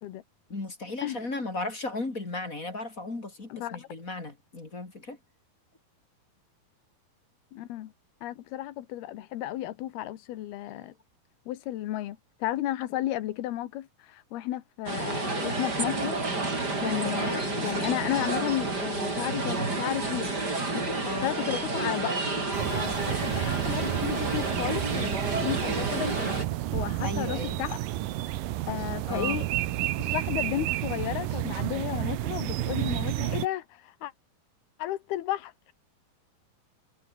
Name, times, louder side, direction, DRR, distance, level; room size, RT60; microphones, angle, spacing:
voice 1, 0.5-5.2 17.2-17.7 21.0-21.3 27.0-27.6 29.1-29.4, left 2 dB, 20° left, 3.3 m, -35 dB
voice 2, 3.5-3.9 7.5-7.9 8.2-10.9 11.5-16.2 16.5-20.3 20.7-20.9 21.2-22.3 22.7-26.4 26.7-27.8 28.7-29.5 30.0-34.1 34.8-35.7, left 14 dB, 80° left, 3.3 m, -33 dB
sound 1, 14.9-26.4, right 3 dB, 25° right, 5.4 m, -30 dB
sound 2, 22.5-33.5, right 15 dB, 70° right, 2.4 m, -31 dB
omnidirectional pair, 4.5 m